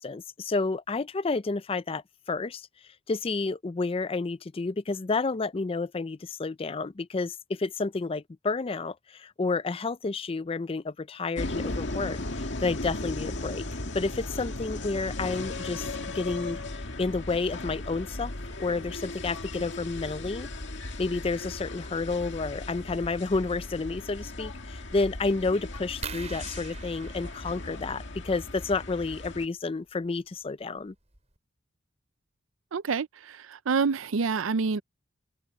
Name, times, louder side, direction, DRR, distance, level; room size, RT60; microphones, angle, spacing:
voice 1, 0.0-2.7 3.1-13.6 13.9-15.8 16.1-16.6 17.0-18.3 18.6-20.5 21.0-30.9, left 3 dB, 30° left, 0.4 m, -30 dB
sound 1, 11.4-29.5, left 2 dB, 60° left, 2.1 m, -37 dB
sound 2, 26.0-28.4 30.0-30.2 30.8-30.9 31.1-31.4, right 5 dB, 35° right, 5.4 m, -43 dB
voice 2, 32.7-34.8, right 5 dB, 85° right, 0.6 m, -27 dB
head